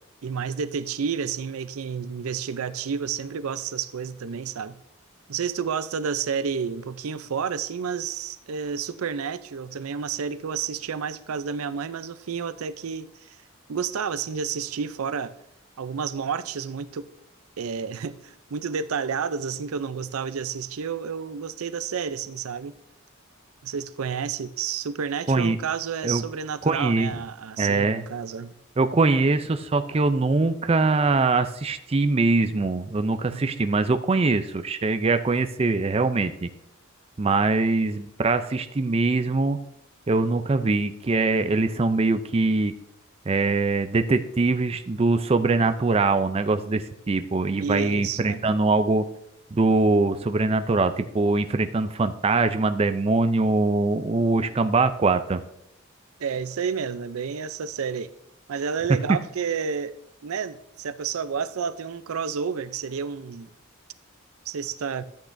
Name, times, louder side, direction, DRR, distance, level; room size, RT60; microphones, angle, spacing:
voice 1, 0.2-4.8 5.3-13.4 13.7-15.3 15.8-17.1 17.6-22.7 23.6-28.6 33.3-33.6 47.6-48.4 56.2-58.1 58.5-60.0 60.2-63.5 64.5-65.0, right 6 dB, 90° right, 0.5 m, -30 dB
voice 2, 26.6-27.1 27.6-28.0 28.8-36.5 37.2-39.6 40.1-42.7 43.3-49.1 49.5-55.4, right 3 dB, 30° right, 0.4 m, -22 dB
13.0 x 8.4 x 2.6 m
head